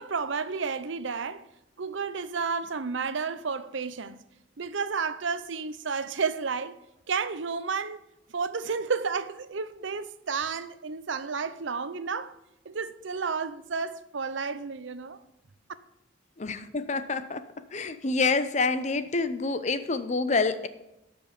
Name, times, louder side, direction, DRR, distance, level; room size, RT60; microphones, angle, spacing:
voice 1, 0.0-1.5 1.8-4.2 4.6-6.8 7.1-8.0 8.3-12.4 12.6-15.2, right 5 dB, 70° right, 0.7 m, -31 dB
voice 2, 16.4-17.4 17.7-20.7, left 3 dB, 35° left, 0.6 m, -27 dB
12.5 x 5.2 x 6.6 m
head